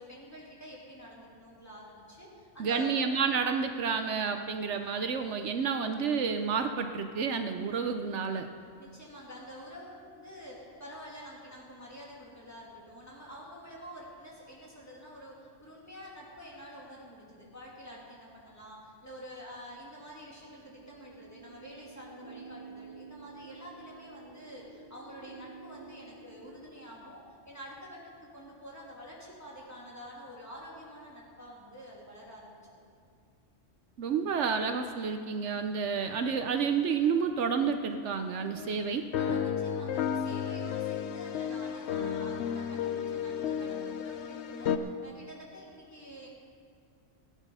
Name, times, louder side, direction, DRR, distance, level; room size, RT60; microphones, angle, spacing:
voice 1, 0.0-3.1 8.8-32.8 39.1-46.3, equal, 15° left, -5 dB, 2.8 m, -48 dB
voice 2, 2.6-8.5 34.0-39.0, right 6 dB, 75° right, 7 dB, 1.0 m, -30 dB
sound 1, 20.2-26.8, right 4 dB, 15° right, 1.8 m, -50 dB
sound 2, 38.6-38.7 39.1-44.8, left 8 dB, 70° left, 0.9 m, -32 dB
18.0 x 9.2 x 5.5 m, 2.2 s
omnidirectional pair, 1.3 m